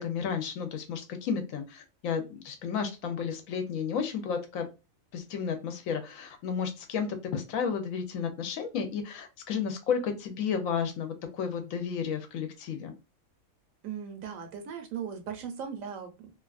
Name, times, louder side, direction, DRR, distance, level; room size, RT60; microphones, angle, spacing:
voice 1, 0.0-4.7 5.1-12.9, left 6 dB, 80° left, 7 dB, 1.0 m, -32 dB
voice 2, 13.8-16.3, right 7 dB, 75° right, 6 dB, 1.1 m, -38 dB
2.8 x 2.3 x 2.4 m, 0.28 s
omnidirectional pair, 1.4 m